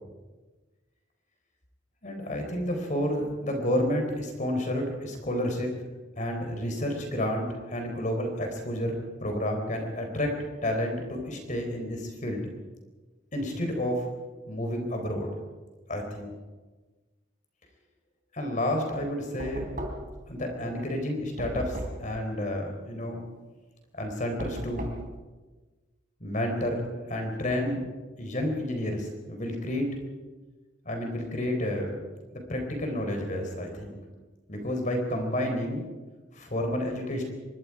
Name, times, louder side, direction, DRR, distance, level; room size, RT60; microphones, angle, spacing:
voice 1, 2.0-5.7 6.2-10.4 10.6-12.5 13.3-14.1 14.5-15.3 15.9-16.3 18.3-19.7 20.3-23.2 23.9-24.9 26.2-27.9 28.2-29.9 30.8-32.0 32.3-34.0 34.5-35.8 36.3-37.2, left 1 dB, 40° left, 4 dB, 4.2 m, -30 dB
Knock, 19.4-20.3 21.4-22.1 24.4-25.1, right 1 dB, 45° right, 3.8 m, -36 dB
24.5 x 22.5 x 4.9 m, 1.3 s
head